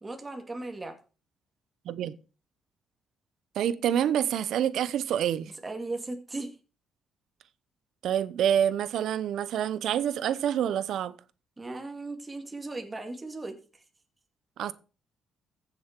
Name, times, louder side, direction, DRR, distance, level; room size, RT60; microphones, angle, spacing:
voice 1, 0.0-1.0 5.5-6.5 11.6-13.8, right 2 dB, 20° right, 2.2 m, -37 dB
voice 2, 3.6-5.5 8.0-11.1 14.6-14.7, right 9 dB, 75° right, 0.8 m, -27 dB
15.0 x 7.3 x 4.6 m
cardioid pair, 90°, 0 cm